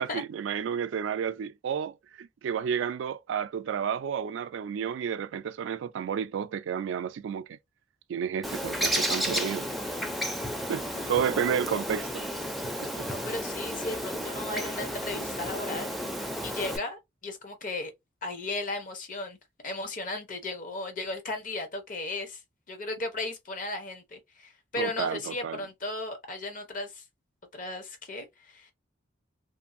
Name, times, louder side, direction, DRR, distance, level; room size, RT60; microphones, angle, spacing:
voice 1, 0.0-7.6 8.1-9.6 10.7-12.1 12.8-13.1 24.8-25.6, right 7 dB, 75° right, 0.3 m, -31 dB
Bird, 8.4-16.8, equal, ahead, 0.4 m, -32 dB
voice 2, 13.0-15.9 16.4-17.9 18.2-19.4 19.6-22.4 22.7-27.0 27.5-28.7, left 2 dB, 45° left, 0.7 m, -35 dB
2.6 x 2.4 x 2.5 m
head